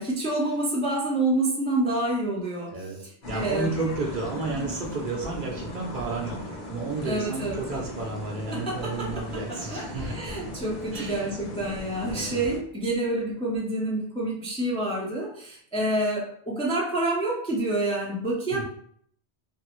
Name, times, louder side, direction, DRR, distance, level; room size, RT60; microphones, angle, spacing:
voice 1, 0.0-3.7 4.6-4.7 7.0-7.6 8.5-18.6, right 2 dB, 10° left, -3 dB, 0.4 m, -28 dB
sound 1, 3.2-12.6, left 1 dB, 45° left, 0.9 m, -38 dB
voice 2, 3.3-10.2 10.9-11.2 12.1-12.4 18.5-18.6, right 3 dB, 55° right, 0 dB, 0.7 m, -32 dB
3.0 x 2.5 x 2.9 m, 0.63 s
omnidirectional pair, 1.1 m